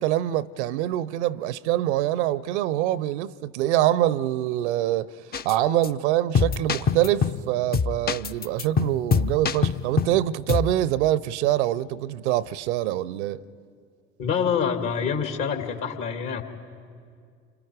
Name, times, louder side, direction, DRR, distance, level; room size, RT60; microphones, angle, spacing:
voice 1, 0.0-5.1 5.4-13.4, right 13 dB, 70° right, 0.6 m, -25 dB
sound 1, 5.3-5.5 5.8-5.9 6.3-7.4 7.7-10.2 10.5-10.7, left 5 dB, 25° left, 0.7 m, -24 dB
voice 2, 14.2-16.4, left 7 dB, 55° left, 2.5 m, -26 dB
28.5 x 26.5 x 5.0 m
figure-of-eight pair, 60°, 36 cm